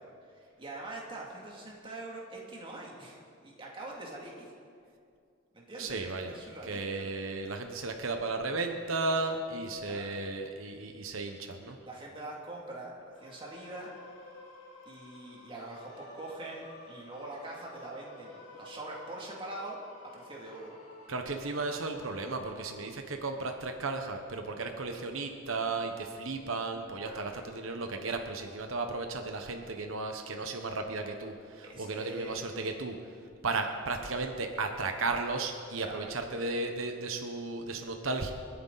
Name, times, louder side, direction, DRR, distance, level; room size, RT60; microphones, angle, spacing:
voice 1, 0.0-4.5 5.5-7.0 9.8-10.2 11.8-13.9 14.9-20.8 27.0-27.4 31.6-32.4 35.8-36.1, right 2 dB, 25° right, -3 dB, 2.6 m, -44 dB
voice 2, 5.8-6.3 6.6-11.8 21.1-33.0 33.4-38.3, right 3 dB, 85° right, 4 dB, 1.1 m, -34 dB
sound 1, 13.1-22.7, left 2 dB, 85° left, 3.8 m, -52 dB
28.5 x 9.5 x 4.1 m, 2.3 s
head